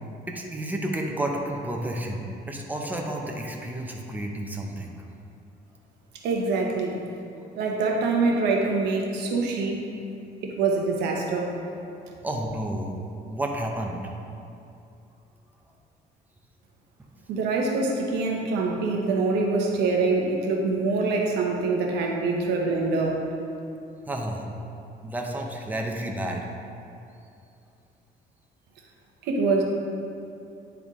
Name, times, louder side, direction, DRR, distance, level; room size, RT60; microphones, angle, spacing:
voice 1, 0.3-4.9 12.2-12.9 13.3-14.0 24.1-24.5 25.0-26.5, right 1 dB, 10° right, 0 dB, 0.8 m, -31 dB
voice 2, 6.2-7.0 7.6-9.8 10.4-11.5 17.3-23.2 29.2-29.6, right 3 dB, 85° right, 0 dB, 1.0 m, -25 dB
9.9 x 3.5 x 3.7 m, 2.6 s
cardioid pair, 110°, 17 cm